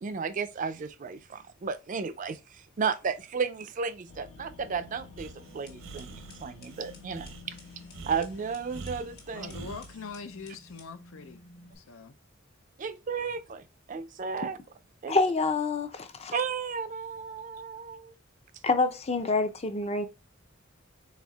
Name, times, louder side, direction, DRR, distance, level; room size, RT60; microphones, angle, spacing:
voice 1, 0.0-2.4 2.8-7.6 8.1-9.6 12.8-14.6 15.0-15.2 16.3-18.1, right 5 dB, 40° right, 0.4 m, -33 dB
sound 1, 4.1-9.9, left 4 dB, 65° left, 1.0 m, -52 dB
Breathing, 5.2-9.9, right 4 dB, 80° right, 0.7 m, -45 dB
sound 2, 5.5-11.8, left 1 dB, 50° left, 1.3 m, -53 dB
voice 2, 9.3-11.4 11.8-12.1, left 5 dB, 85° left, 0.6 m, -43 dB
voice 3, 15.1-16.3 18.6-20.1, left 3 dB, 30° left, 0.5 m, -27 dB
4.3 x 4.0 x 2.3 m
head